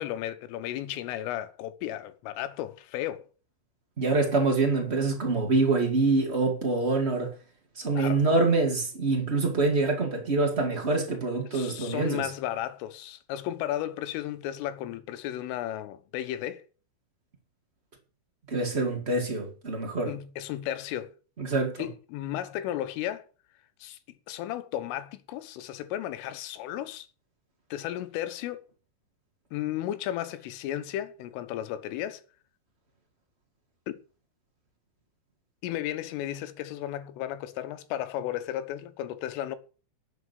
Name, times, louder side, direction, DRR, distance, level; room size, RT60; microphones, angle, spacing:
voice 1, 0.0-3.3 8.0-8.2 11.5-16.7 20.1-21.1 21.8-23.3 23.8-24.0 24.3-27.1 27.7-28.7 29.5-32.2 33.9-34.0 35.6-39.6, left 12 dB, 90° left, 3.7 m, -34 dB
voice 2, 4.0-7.3 7.7-12.3 18.5-20.1 21.4-21.8, right 3 dB, 85° right, 0.5 m, -25 dB
11.5 x 8.0 x 8.3 m
omnidirectional pair, 5.6 m